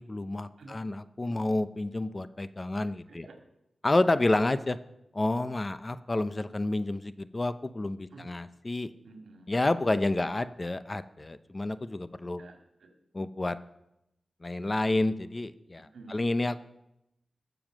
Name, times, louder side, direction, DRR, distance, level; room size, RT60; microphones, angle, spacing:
voice 1, 0.0-3.3 3.8-4.8 5.1-8.9 9.5-12.4 13.1-13.6 14.4-16.6, left 2 dB, 30° left, 13 dB, 0.6 m, -29 dB
voice 2, 2.7-3.4 8.1-8.3 9.0-9.5 10.2-10.4 12.4-12.9 15.8-16.3, right 3 dB, 85° right, 4 dB, 2.1 m, -51 dB
20.5 x 7.0 x 6.2 m, 0.88 s
wide cardioid pair, 105°, 0 cm